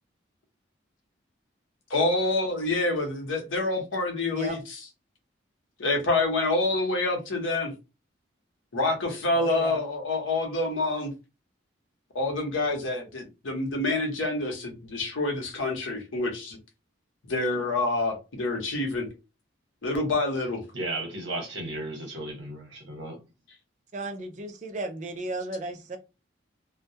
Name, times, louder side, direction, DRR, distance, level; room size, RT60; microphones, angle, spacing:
voice 1, 1.9-4.8 5.8-7.7 8.7-11.1 12.1-16.6 17.3-19.1 19.8-20.6, left 2 dB, 90° left, 0.8 m, -27 dB
voice 2, 9.3-9.8 23.9-26.0, right 2 dB, 40° right, 0.4 m, -34 dB
voice 3, 20.7-23.2, right 2 dB, 70° right, 0.9 m, -34 dB
2.2 x 2.1 x 2.7 m
head